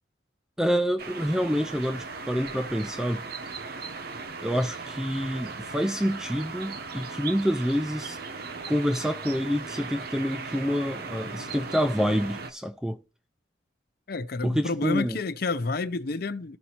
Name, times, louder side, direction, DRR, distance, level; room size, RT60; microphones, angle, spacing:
voice 1, 0.6-3.2 4.4-8.2 8.7-13.0 14.4-15.2, equal, 5° right, 0.3 m, -27 dB
sound 1, 1.0-12.5, right 4 dB, 50° right, 0.8 m, -38 dB
voice 2, 14.1-16.6, left 3 dB, 50° left, 0.6 m, -29 dB
14.0 x 5.2 x 2.9 m
head